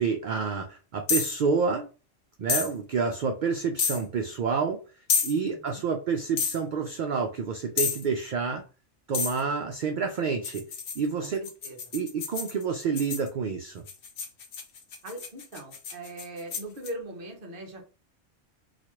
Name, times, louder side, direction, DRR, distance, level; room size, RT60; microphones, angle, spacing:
voice 1, 0.0-1.9 2.4-4.8 5.2-8.6 9.1-10.6 11.0-11.4 11.9-13.8, right 5 dB, 70° right, 4 dB, 0.4 m, -28 dB
sound 1, 1.1-1.4 2.5-2.7 3.8-4.0 5.1-5.3 6.4-6.6 7.8-8.0 9.1-9.4 10.4-13.3 13.9-16.9, left 6 dB, 55° left, 0.8 m, -29 dB
voice 2, 15.0-17.9, right 1 dB, 45° right, 0 dB, 1.1 m, -40 dB
4.0 x 2.3 x 3.0 m, 0.34 s
omnidirectional pair, 1.3 m